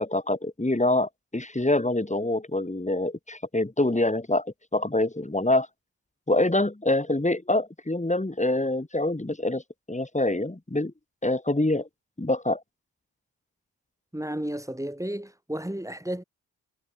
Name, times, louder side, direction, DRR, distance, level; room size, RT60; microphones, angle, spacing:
voice 1, 0.0-5.7 6.3-9.6 9.9-10.9 11.2-11.9 12.2-12.6, left 2 dB, 15° left, 6.5 m, -25 dB
voice 2, 14.1-16.2, right 1 dB, 5° right, 4.2 m, -32 dB
supercardioid pair, 40°, 43 cm